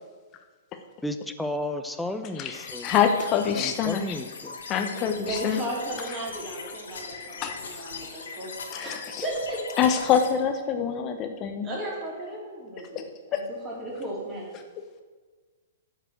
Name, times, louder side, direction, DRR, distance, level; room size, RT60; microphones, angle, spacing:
voice 1, 1.0-2.9 3.5-4.6, left 1 dB, 5° left, 8 dB, 0.6 m, -33 dB
voice 2, 2.3-4.2 4.7-5.6 7.4-7.8 8.7-9.2 9.8-11.7 12.9-13.0 13.3-13.4, left 8 dB, 30° left, 6 dB, 0.9 m, -26 dB
sound 1, 2.5-10.3, left 5 dB, 65° left, 1.4 m, -40 dB
voice 3, 4.9-8.5 8.8-9.6 11.6-14.5, right 1 dB, 20° right, -5 dB, 3.5 m, -35 dB
9.1 x 5.1 x 7.5 m, 1.4 s
figure-of-eight pair, 110°, 0 cm